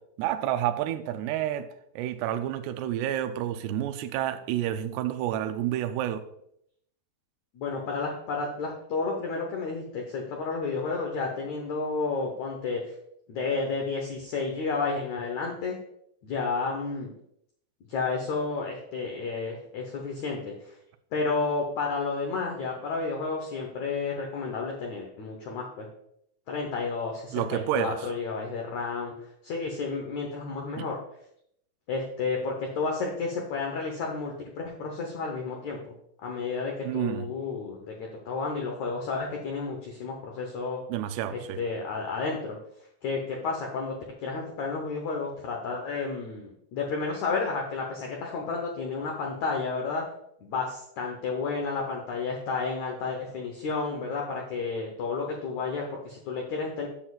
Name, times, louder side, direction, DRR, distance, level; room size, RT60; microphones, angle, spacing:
voice 1, 0.2-1.7 2.0-6.2 27.3-28.1 30.8-30.9 36.8-37.3 40.9-41.6, right 12 dB, 90° right, 10 dB, 2.7 m, -29 dB
voice 2, 7.5-12.8 13.3-15.8 16.2-17.1 17.9-20.7 21.1-25.9 26.5-29.1 29.4-31.0 31.9-35.9 36.2-40.8 41.3-42.6 43.0-44.0 44.2-50.0 50.4-56.9, left 4 dB, 85° left, 0 dB, 1.6 m, -31 dB
10.5 x 7.2 x 2.4 m, 0.72 s
omnidirectional pair, 4.7 m